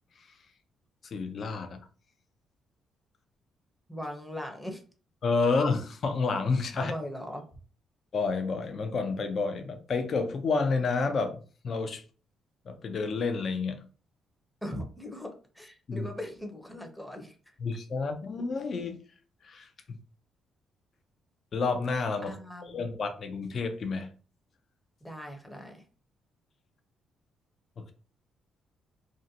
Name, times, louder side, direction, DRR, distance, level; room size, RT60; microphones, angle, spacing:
voice 1, 1.1-1.8 5.2-6.9 8.1-12.0 12.7-13.8 15.9-16.1 17.6-19.0 19.4-20.0 21.5-22.3 22.6-24.1 27.8-27.9, left 4 dB, 50° left, 7 dB, 0.5 m, -30 dB
voice 2, 3.9-4.8 6.7-7.4 14.6-17.3 22.3-22.9 25.0-25.8, equal, 5° left, 3 dB, 0.6 m, -39 dB
2.5 x 2.1 x 2.7 m, 0.38 s
cardioid pair, 90°, 0 cm